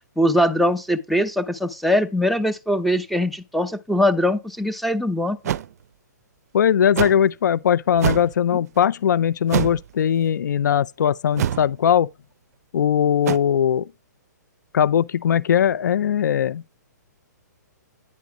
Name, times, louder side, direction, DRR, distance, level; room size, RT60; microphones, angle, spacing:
voice 1, 0.2-5.4, equal, ahead, 0.6 m, -21 dB
sound 1, 5.4-5.7 7.0-7.2 7.9-8.3 9.5-9.9 11.4-11.7 13.2-13.4, right 10 dB, 55° right, 0.4 m, -24 dB
voice 2, 6.5-12.1 12.7-13.9 14.7-16.6, left 9 dB, 75° left, 0.4 m, -20 dB
9.5 x 4.0 x 4.8 m
hypercardioid pair, 140°, 10 cm